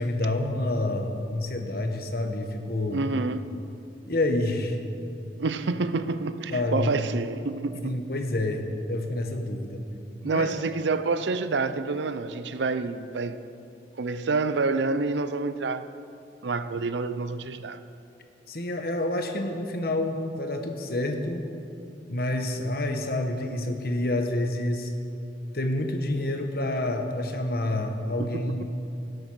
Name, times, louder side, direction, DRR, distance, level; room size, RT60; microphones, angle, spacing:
voice 1, 0.0-3.0 4.1-4.8 6.5-6.9 7.8-9.8 10.2-10.5 18.5-21.5 22.1-24.9 25.5-28.6, left 1 dB, 55° left, 5 dB, 1.2 m, -28 dB
voice 2, 2.9-3.5 5.4-8.0 10.2-13.4 14.0-15.9 16.4-17.8 28.3-28.4, right 3 dB, 75° right, 12 dB, 0.6 m, -28 dB
17.0 x 7.9 x 6.2 m, 2.7 s
head